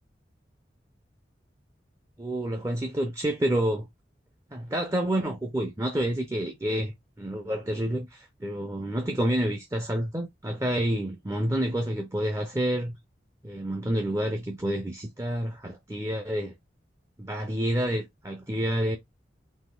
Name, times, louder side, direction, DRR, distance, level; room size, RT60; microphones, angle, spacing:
voice 1, 2.2-3.9 4.5-13.0 13.4-16.5 17.2-19.0, right 1 dB, 15° right, 0.5 m, -29 dB
4.1 x 2.7 x 3.7 m
head